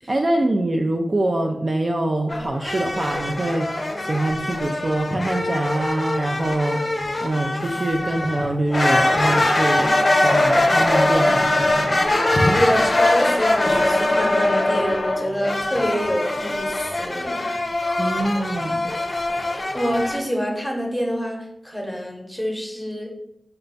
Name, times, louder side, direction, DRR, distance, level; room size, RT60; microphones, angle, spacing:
voice 1, 0.1-6.9 7.2-12.1 18.0-18.9, right 1 dB, 40° right, 3 dB, 0.3 m, -24 dB
sound 1, 2.3-20.2, left 1 dB, 45° left, 0.5 m, -22 dB
voice 2, 12.5-17.4 19.5-23.1, equal, ahead, 0 dB, 0.9 m, -26 dB
4.2 x 2.2 x 3.9 m, 0.78 s
wide cardioid pair, 70°, 0 cm